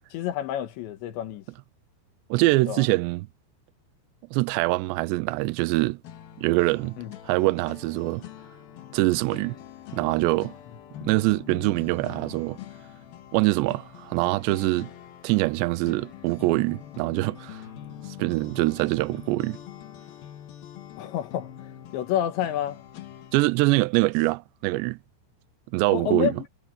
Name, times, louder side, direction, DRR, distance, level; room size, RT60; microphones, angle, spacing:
voice 1, 0.1-1.5 2.7-2.9 7.0-7.2 21.0-22.8 25.9-26.5, left 11 dB, 85° left, 3.8 m, -29 dB
voice 2, 2.3-3.3 4.3-6.0 6.4-7.0 7.3-8.2 8.9-9.6 9.9-10.5 11.0-12.6 13.3-14.9 15.2-17.6 18.2-19.6 23.3-25.0 25.7-26.3, right 21 dB, 85° right, 2.8 m, -24 dB
sound 1, 6.0-23.5, left 11 dB, 65° left, 3.2 m, -44 dB
omnidirectional pair, 5.1 m